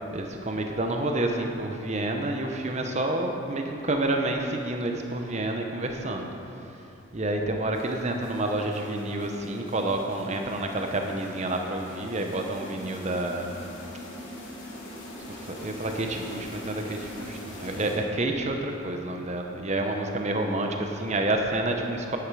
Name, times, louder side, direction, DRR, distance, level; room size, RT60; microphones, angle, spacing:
voice 1, 0.1-6.3 6.6-6.8 7.1-13.5 15.3-22.2, right 2 dB, 30° right, 3 dB, 0.8 m, -29 dB
sound 1, 7.7-18.4, left 1 dB, 60° left, 2.9 m, -43 dB
10.0 x 9.7 x 4.8 m, 2.8 s
head